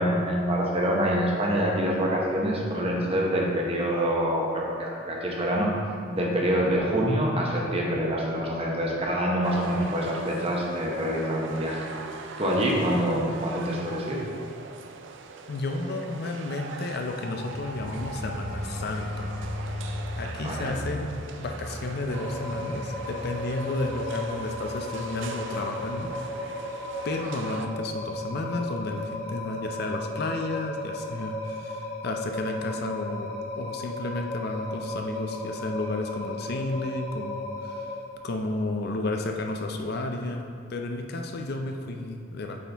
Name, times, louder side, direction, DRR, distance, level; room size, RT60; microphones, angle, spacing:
voice 1, 0.0-5.7 6.1-11.9 12.4-14.2 20.4-20.7, equal, 30° right, -2 dB, 1.0 m, -26 dB
sound 1, 9.4-27.7, right 4 dB, 65° right, 0.4 m, -41 dB
voice 2, 15.5-19.3 20.2-21.1 21.4-26.1 27.0-33.3 33.6-37.9 38.2-42.6, left 2 dB, 50° left, 4 dB, 0.5 m, -32 dB
sound 2, 17.3-27.7 28.1-28.4, left 1 dB, 15° left, 1.1 m, -39 dB
sound 3, 22.1-38.0, left 1 dB, 30° left, 1.4 m, -36 dB
8.2 x 4.3 x 3.4 m, 2.3 s
head